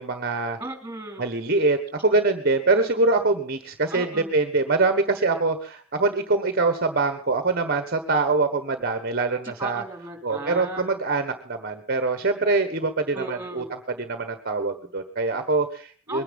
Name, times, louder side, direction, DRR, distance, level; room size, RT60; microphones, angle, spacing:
voice 1, 0.0-0.6 1.2-4.1 4.3-9.8 10.2-16.2, right 3 dB, 45° right, 8 dB, 1.3 m, -24 dB
voice 2, 0.6-1.3 3.9-4.4 9.6-10.9 13.1-13.7 16.1-16.2, right 2 dB, 10° right, 4 dB, 4.1 m, -35 dB
21.5 x 10.0 x 5.5 m, 0.43 s
head